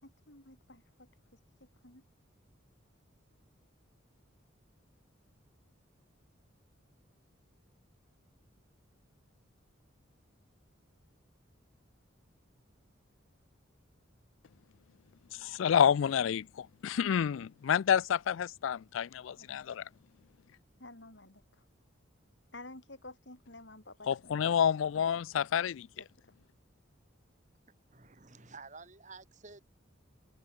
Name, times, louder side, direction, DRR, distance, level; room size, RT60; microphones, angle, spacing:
voice 1, 0.0-2.0 19.4-19.5 20.8-21.6 22.5-24.4 24.9-25.5 26.0-26.3, left 2 dB, 60° left, 6.2 m, -52 dB
voice 2, 15.3-19.8 24.1-25.9, left 8 dB, 75° left, 0.4 m, -29 dB
voice 3, 27.9-29.6, right 4 dB, 40° right, 2.2 m, -51 dB
head